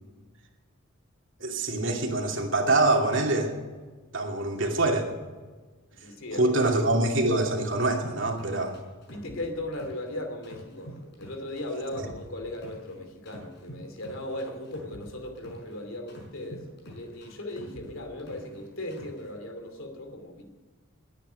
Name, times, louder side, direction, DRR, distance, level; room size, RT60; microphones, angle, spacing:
voice 1, 1.4-3.5 4.1-5.1 6.3-8.7 12.0-12.1, right 2 dB, 60° right, 1 dB, 2.6 m, -25 dB
voice 2, 5.9-6.7 9.1-20.4, left 1 dB, 70° left, 5 dB, 2.8 m, -37 dB
sound 1, 8.0-10.1 10.4-12.9 13.3-15.7 16.1-18.6 18.9-19.3, right 1 dB, 50° left, 5.4 m, -46 dB
21.0 x 9.5 x 6.4 m, 1.4 s
head